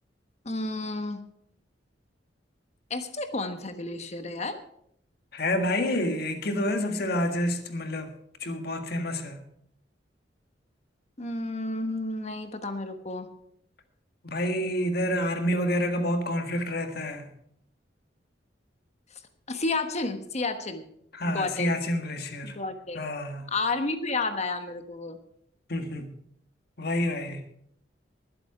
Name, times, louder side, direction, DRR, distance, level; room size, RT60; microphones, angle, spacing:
voice 1, 0.4-1.2 2.9-4.6 11.2-13.3 19.5-20.9 21.2-21.7 22.4-23.0 23.5-25.2, left 3 dB, 35° left, 1.2 m, -31 dB
voice 2, 5.3-8.1 8.4-9.4 14.2-17.3 21.1-22.5 22.9-23.4 25.7-26.1 26.8-27.4, left 1 dB, 55° left, 1.7 m, -28 dB
20.0 x 7.8 x 4.9 m
head